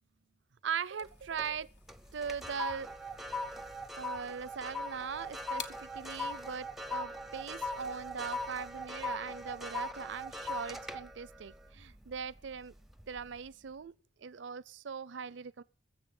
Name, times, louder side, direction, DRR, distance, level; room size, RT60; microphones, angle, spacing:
voice 1, 0.6-1.7 2.1-2.9 4.0-12.7 13.1-13.9 14.2-15.6, right 6 dB, 70° right, 0.5 m, -40 dB
sound 1, 0.7-6.0, left 8 dB, 65° left, 1.0 m, -53 dB
sound 2, 1.0-1.6 1.9-12.4 12.9-13.2, left 1 dB, ahead, 0.6 m, -40 dB
21.5 x 7.3 x 5.4 m
head